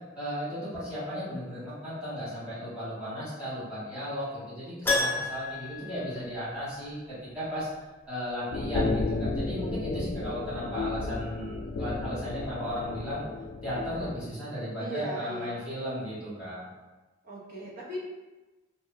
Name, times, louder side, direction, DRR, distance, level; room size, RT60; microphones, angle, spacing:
voice 1, 0.1-7.7 8.1-13.2 13.6-16.7, equal, 5° right, -13 dB, 1.5 m, -35 dB
Keyboard (musical), 4.9-6.9 7.2-7.3 10.0-10.1 10.3-10.4, left 2 dB, 10° left, 0.4 m, -31 dB
sound 1, 8.5-14.1, left 3 dB, 85° left, 0.3 m, -33 dB
voice 2, 14.8-15.6 17.2-18.0, equal, 50° right, -4 dB, 0.7 m, -38 dB
2.6 x 2.5 x 2.7 m, 1.1 s
head